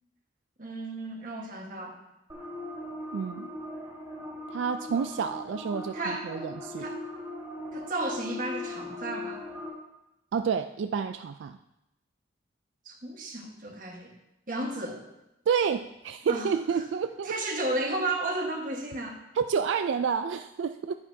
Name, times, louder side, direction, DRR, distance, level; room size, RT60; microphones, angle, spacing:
voice 1, 0.6-2.0 5.9-6.3 6.8-7.0 7.7-9.4 12.8-14.1 14.5-15.1 16.3-16.5 17.2-19.2, right 2 dB, 45° right, 1 dB, 1.4 m, -33 dB
sound 1, 2.3-9.7, left 1 dB, 15° right, 2.5 m, -39 dB
voice 2, 3.1-3.5 4.5-6.8 10.3-11.6 15.5-17.4 19.4-20.9, right 6 dB, 80° right, 9 dB, 0.3 m, -29 dB
10.5 x 10.5 x 2.8 m, 0.91 s
head